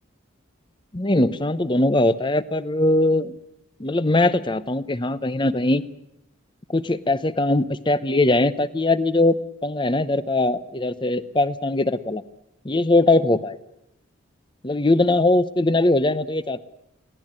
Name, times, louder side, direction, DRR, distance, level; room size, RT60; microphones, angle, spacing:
voice 1, 0.9-3.3 3.8-5.8 6.7-12.2 12.6-13.6 14.6-16.6, left 2 dB, 25° left, 15 dB, 0.8 m, -21 dB
23.0 x 17.0 x 8.9 m, 0.85 s
head